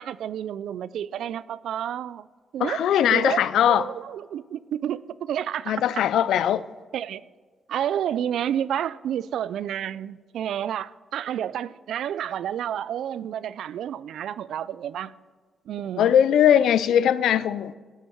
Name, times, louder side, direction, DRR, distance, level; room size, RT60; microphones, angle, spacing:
voice 1, 0.0-2.3 2.5-5.8 6.9-7.2 7.7-15.1 15.7-16.1, right 10 dB, 80° right, 0.4 m, -30 dB
voice 2, 2.6-3.8 5.7-6.6 16.0-17.7, left 9 dB, 90° left, 0.4 m, -20 dB
17.0 x 8.2 x 4.5 m
cardioid pair, 110°, 0 cm